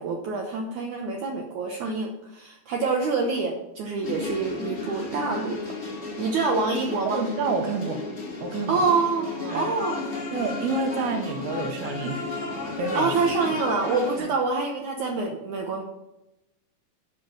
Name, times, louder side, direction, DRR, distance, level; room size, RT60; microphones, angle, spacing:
voice 1, 0.0-5.7 6.2-7.2 8.7-10.1 12.9-15.8, right 4 dB, 90° right, 1 dB, 1.6 m, -26 dB
sound 1, 4.0-14.2, left 3 dB, 50° left, 0.9 m, -33 dB
voice 2, 7.1-8.0 8.4-8.8 9.4-9.6 10.3-12.3 12.8-13.1 14.2-14.3, right 3 dB, 75° right, 5 dB, 2.8 m, -29 dB
12.0 x 5.4 x 7.2 m, 0.94 s
omnidirectional pair, 4.9 m